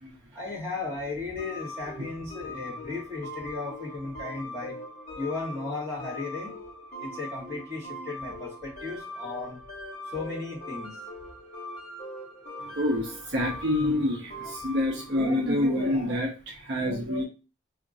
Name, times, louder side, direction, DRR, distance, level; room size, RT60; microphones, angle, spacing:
voice 1, 0.3-4.8 5.2-6.6 7.0-9.6 10.1-11.0, left 3 dB, 15° right, -6 dB, 1.5 m, -35 dB
sound 1, 1.4-16.1, left 1 dB, 40° left, 1.3 m, -41 dB
voice 2, 12.7-17.2, left 1 dB, 55° right, -1 dB, 0.6 m, -27 dB
2.8 x 2.5 x 3.8 m, 0.32 s
head